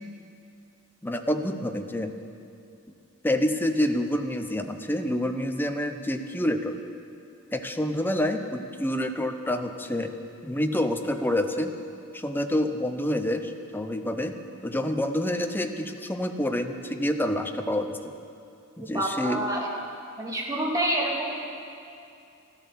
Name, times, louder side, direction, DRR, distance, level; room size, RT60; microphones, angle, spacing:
voice 1, 1.0-2.1 3.2-6.7 7.5-10.1 10.4-11.7 12.1-14.4 14.6-18.0 18.8-19.4, left 1 dB, 10° left, 6 dB, 0.7 m, -27 dB
voice 2, 18.8-19.7 20.2-21.5, right 1 dB, 15° right, -2 dB, 2.3 m, -28 dB
13.0 x 13.0 x 7.3 m, 2.6 s
head